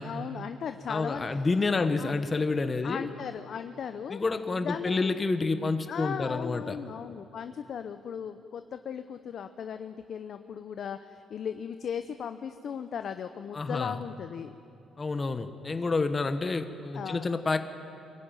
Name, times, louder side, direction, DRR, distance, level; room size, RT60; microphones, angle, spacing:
voice 1, 0.0-1.4 1.7-2.1 2.8-4.2 4.6-5.2 5.9-14.5 16.9-17.3, left 7 dB, 60° left, 9 dB, 0.7 m, -37 dB
voice 2, 0.9-3.1 4.1-6.8 13.5-14.0 15.0-17.6, left 3 dB, 30° left, 9 dB, 1.1 m, -29 dB
23.5 x 15.5 x 9.2 m, 2.8 s
cardioid pair, 90°, 0 cm